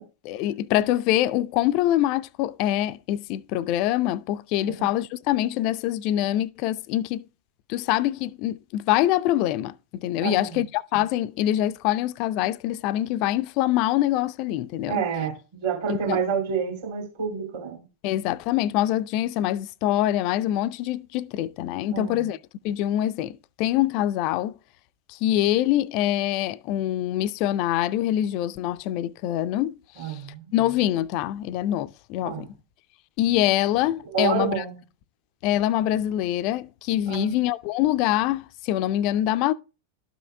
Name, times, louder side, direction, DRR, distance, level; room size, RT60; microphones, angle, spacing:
voice 1, 0.2-7.3 7.7-15.0 15.9-16.2 18.0-22.4 22.6-24.6 25.1-29.8 30.1-30.2 30.5-32.6 33.2-34.6 35.4-39.5, left 13 dB, 45° left, 0.4 m, -24 dB
voice 2, 10.2-10.6 14.9-17.8 21.9-22.2 30.0-30.5 32.2-32.5 34.1-34.7 37.1-37.4, right 7 dB, 55° right, 2.7 m, -28 dB
12.5 x 5.5 x 2.3 m
figure-of-eight pair, 90°, 0 cm